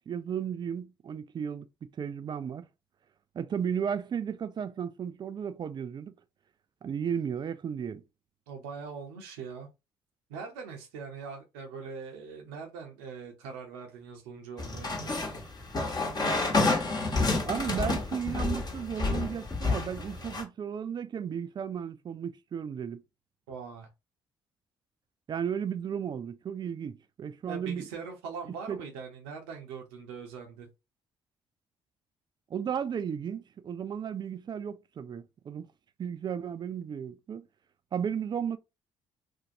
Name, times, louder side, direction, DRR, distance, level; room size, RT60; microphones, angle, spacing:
voice 1, 0.1-1.7 2.0-2.7 3.3-6.1 6.8-8.0 17.4-23.0 25.3-27.9 28.7-28.8 32.5-35.7 36.0-37.5 37.9-38.6, right 8 dB, 40° right, 0.3 m, -34 dB
voice 2, 8.5-9.7 10.3-15.0 23.5-23.9 27.5-30.7, right 5 dB, 80° right, 0.6 m, -42 dB
sound 1, 14.6-20.4, left 3 dB, 35° left, 1.0 m, -29 dB
2.5 x 2.1 x 2.6 m
hypercardioid pair, 45°, 12 cm